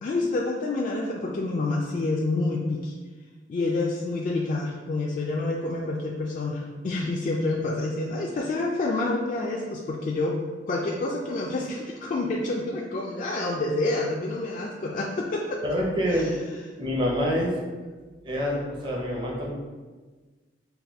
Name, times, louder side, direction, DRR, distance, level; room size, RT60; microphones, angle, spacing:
voice 1, 0.0-2.9 3.5-10.4 10.7-15.6 16.1-16.3, left 2 dB, 45° left, -2 dB, 0.3 m, -28 dB
voice 2, 15.6-16.3 16.8-17.5 18.2-19.5, equal, 25° right, -3 dB, 0.6 m, -26 dB
4.1 x 2.2 x 3.4 m, 1.3 s
head